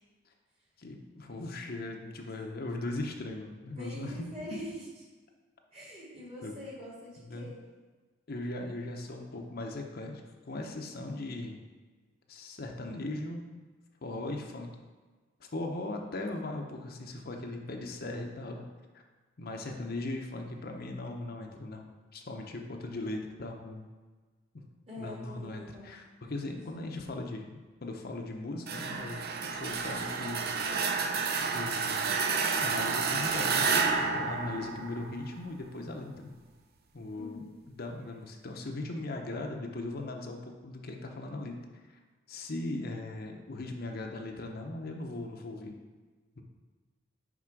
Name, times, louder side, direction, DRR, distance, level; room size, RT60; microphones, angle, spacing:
voice 1, 0.8-4.2 6.4-6.5 7.2-7.5 8.3-10.2 10.5-11.6 12.3-13.4 14.0-14.7 15.4-18.6 18.9-19.0 19.4-23.9 25.0-30.5 31.5-32.0 32.6-36.4 36.9-41.6 42.3-45.8 46.4-46.5, left 2 dB, 55° left, 2 dB, 0.7 m, -39 dB
voice 2, 3.7-4.8 5.7-7.6 19.6-20.0 24.9-25.9 37.1-37.6, left 1 dB, 35° right, -5 dB, 2.3 m, -44 dB
sound 1, 28.7-35.4, right 5 dB, 55° right, 0.6 m, -30 dB
6.0 x 5.4 x 4.6 m, 1.3 s
head